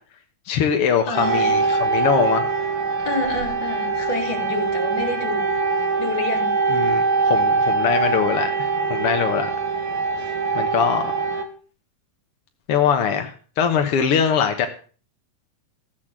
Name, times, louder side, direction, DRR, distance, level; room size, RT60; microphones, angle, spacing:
voice 1, 0.5-2.4 6.7-9.5 10.5-11.2 12.7-14.8, left 7 dB, 65° left, 5 dB, 1.5 m, -22 dB
voice 2, 1.1-1.6 3.0-5.6 6.0-6.6, left 3 dB, 35° left, 3 dB, 4.0 m, -28 dB
sound 1, 1.1-11.4, right 4 dB, 75° right, 3.7 m, -22 dB
15.0 x 8.2 x 7.4 m, 0.41 s
omnidirectional pair, 4.0 m